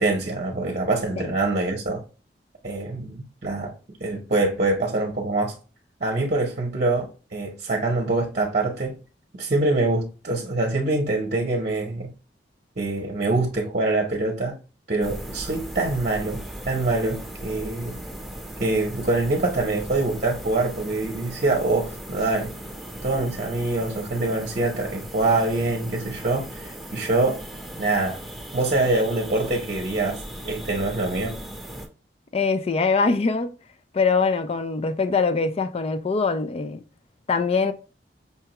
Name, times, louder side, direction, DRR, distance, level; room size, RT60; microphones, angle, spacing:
voice 1, 0.0-2.0 2.6-3.7 4.0-5.5 6.0-9.0 9.4-12.1 12.8-14.6 14.9-18.0 18.6-22.5 23.0-27.4 27.8-28.2 28.5-31.4, right 2 dB, 45° right, 0.8 m, -24 dB
sound 1, 15.0-31.9, right 1 dB, ahead, 0.8 m, -38 dB
voice 2, 32.3-33.5 33.9-36.8 37.3-37.7, left 4 dB, 35° left, 0.4 m, -23 dB
5.7 x 2.3 x 2.9 m
head